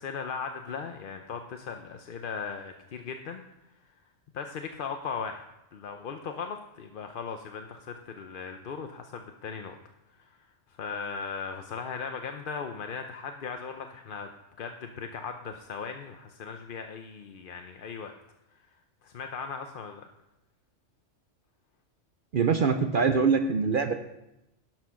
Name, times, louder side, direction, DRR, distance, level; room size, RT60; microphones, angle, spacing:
voice 1, 0.0-3.4 4.3-5.4 5.7-9.8 10.2-10.4 10.8-14.3 14.6-18.1 19.0-20.1, left 5 dB, 50° left, 6 dB, 0.7 m, -38 dB
voice 2, 22.3-23.9, right 5 dB, 50° right, 8 dB, 0.7 m, -24 dB
11.0 x 6.1 x 5.9 m, 0.89 s
omnidirectional pair, 1.3 m